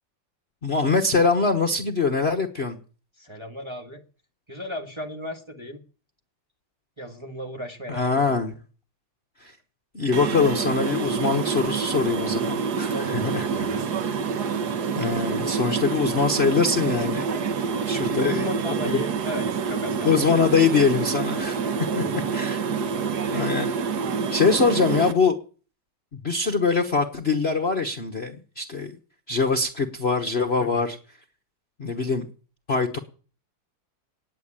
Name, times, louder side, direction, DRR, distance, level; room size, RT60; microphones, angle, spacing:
voice 1, 0.6-2.8 7.9-8.5 9.4-9.5 9.9-13.7 14.9-17.3 17.9-18.5 18.9-19.0 20.0-21.6 22.3-22.6 23.3-23.7 24.3-25.3 26.2-28.9 29.3-31.0 31.8-32.3 32.7-33.0, left 4 dB, 40° left, 4 dB, 1.2 m, -23 dB
voice 2, 3.2-4.0 4.5-5.8 7.0-8.4 12.9-13.8 18.2-20.2 21.6-22.1 30.6-30.8, equal, 15° right, 2 dB, 1.5 m, -35 dB
sound 1, 10.1-25.1, right 6 dB, 60° right, 1.6 m, -27 dB
18.5 x 7.5 x 8.8 m, 0.40 s
omnidirectional pair, 2.1 m